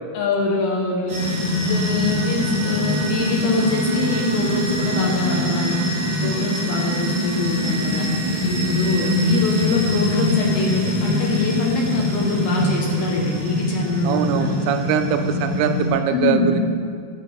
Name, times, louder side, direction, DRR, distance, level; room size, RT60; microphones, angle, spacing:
voice 1, 0.1-1.4 1.6-8.1 8.4-14.5 16.1-16.5, left 3 dB, 70° left, -2 dB, 2.6 m, -24 dB
sound 1, 1.1-15.9, left 1 dB, 50° right, 3.8 m, -23 dB
voice 2, 14.0-16.6, right 8 dB, 85° right, 7 dB, 3.0 m, -22 dB
16.0 x 6.6 x 3.5 m, 2.2 s
omnidirectional pair, 5.6 m